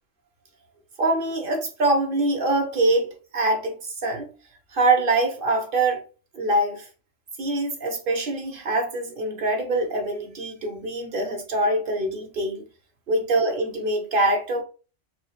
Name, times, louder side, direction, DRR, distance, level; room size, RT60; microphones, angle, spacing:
voice 1, 1.0-3.1 3.3-4.3 4.7-6.0 6.3-6.9 7.4-12.6 13.1-14.6, right 2 dB, 50° right, 1.3 m, -24 dB
4.2 x 2.4 x 4.7 m
omnidirectional pair, 1.2 m